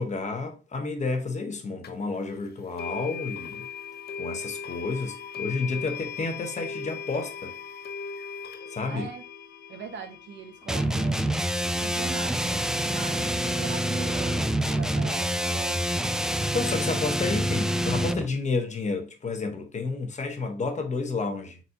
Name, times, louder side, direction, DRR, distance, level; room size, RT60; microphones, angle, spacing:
voice 1, 0.0-3.7 4.2-7.6 8.7-9.1 16.5-21.6, left 3 dB, 35° left, 1.0 m, -30 dB
sound 1, 1.8-1.9 2.8-13.8, left 6 dB, 55° left, 0.7 m, -39 dB
voice 2, 8.9-9.2 9.7-11.3 11.6-16.1, right 6 dB, 65° right, 0.9 m, -40 dB
sound 2, 10.7-18.3, equal, 5° right, 0.3 m, -27 dB
4.2 x 3.9 x 2.8 m
cardioid pair, 90°, 20 cm